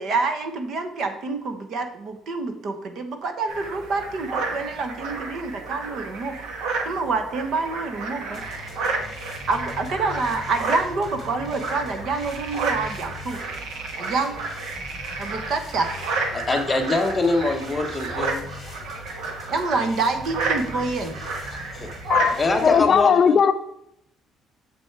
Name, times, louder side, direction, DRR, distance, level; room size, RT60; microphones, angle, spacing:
voice 1, 0.0-6.4 6.8-8.4 9.5-13.4 14.0-14.4 15.2-15.9 19.5-21.2, right 3 dB, 45° right, 1.0 m, -27 dB
sound 1, 3.5-22.8, right 3 dB, 75° right, 1.4 m, -31 dB
sound 2, 8.3-22.9, left 2 dB, 15° right, 1.8 m, -41 dB
voice 2, 16.3-18.5 21.5-21.9 22.4-23.4, left 2 dB, 15° left, 1.0 m, -24 dB
voice 3, 22.1-23.5, left 7 dB, 35° left, 0.3 m, -18 dB
7.0 x 6.1 x 4.6 m
cardioid pair, 175°, 0 cm